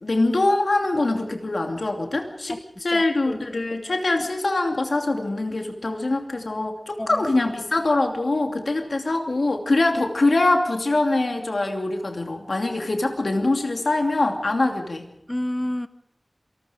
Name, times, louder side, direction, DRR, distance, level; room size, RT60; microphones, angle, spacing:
voice 1, 0.0-15.1, left 2 dB, 90° left, 3 dB, 2.7 m, -23 dB
voice 2, 2.9-3.4 7.0-7.2 15.3-15.9, left 1 dB, 20° left, 12 dB, 0.8 m, -29 dB
27.0 x 19.5 x 5.1 m, 0.82 s
wide cardioid pair, 60°, 0 cm